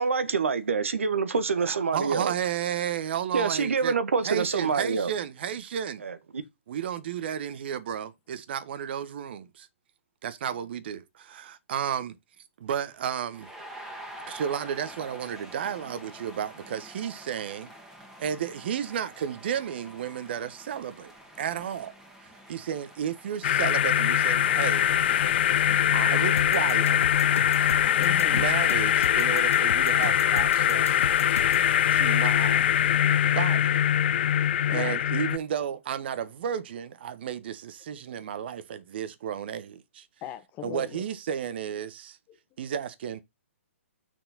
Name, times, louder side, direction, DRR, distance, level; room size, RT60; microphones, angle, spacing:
voice 1, 0.0-2.3 3.3-5.1 6.0-6.2, right 5 dB, 75° right, 1.4 m, -26 dB
voice 2, 1.7-4.0 4.2-6.0 6.7-9.7 10.2-12.2 12.6-13.5 14.3-17.7 18.2-21.9 22.2-24.9 25.1-25.4 25.9-27.0 28.3-31.0 31.9-32.7 33.2-33.7 34.7-40.1 40.6-42.2 42.6-43.2, right 9 dB, 50° right, 1.3 m, -33 dB
sound 1, 12.8-29.4, right 1 dB, 5° right, 2.2 m, -48 dB
sound 2, 23.4-35.4, left 10 dB, 55° left, 0.3 m, -23 dB
sound 3, 26.4-31.7, left 5 dB, 80° left, 0.7 m, -36 dB
voice 3, 27.7-28.5 34.7-35.0 40.2-41.1 42.3-42.4, left 11 dB, 25° left, 1.4 m, -40 dB
6.6 x 6.1 x 4.2 m
hypercardioid pair, 135°, 7 cm